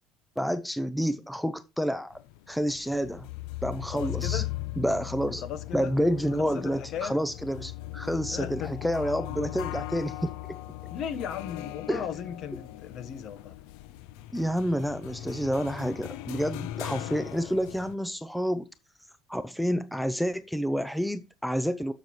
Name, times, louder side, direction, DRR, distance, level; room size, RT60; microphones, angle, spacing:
voice 1, 0.4-2.2 2.5-3.3 3.6-4.4 4.8-5.4 5.7-10.6 11.9-12.0 14.3-18.7 19.3-21.9, equal, ahead, 0.4 m, -29 dB
sound 1, 2.1-17.9, left 15 dB, 85° left, 0.5 m, -39 dB
voice 2, 3.9-4.5 5.4-5.9 6.4-7.2 8.3-8.7 10.9-13.6, left 8 dB, 50° left, 1.0 m, -36 dB
12.0 x 6.6 x 3.1 m
cardioid pair, 145°, 0 cm